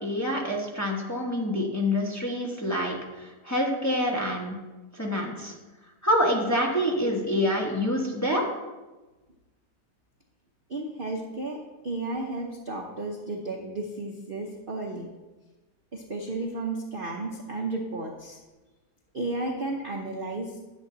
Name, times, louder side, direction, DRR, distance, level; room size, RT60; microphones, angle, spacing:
voice 1, 0.0-4.6 4.9-5.5 6.0-8.5, left 1 dB, 10° left, -2 dB, 1.1 m, -27 dB
voice 2, 10.7-11.6 11.8-15.1 15.9-18.4 19.1-20.5, right 2 dB, 40° right, 1 dB, 0.8 m, -33 dB
10.5 x 7.4 x 3.9 m, 1.2 s
omnidirectional pair, 1.9 m